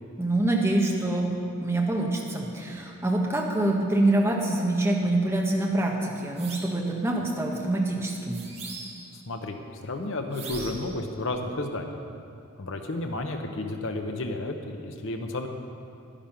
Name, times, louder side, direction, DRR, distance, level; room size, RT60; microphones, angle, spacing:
voice 1, 0.2-8.4, right 1 dB, 10° right, -2 dB, 1.2 m, -25 dB
sound 1, 6.4-6.8 8.3-9.1 10.3-10.9, right 3 dB, 30° right, 1.4 m, -40 dB
voice 2, 9.1-9.6 9.8-12.0 12.6-15.5, left 2 dB, 60° left, 4 dB, 1.0 m, -32 dB
11.0 x 10.0 x 5.8 m, 2.6 s
head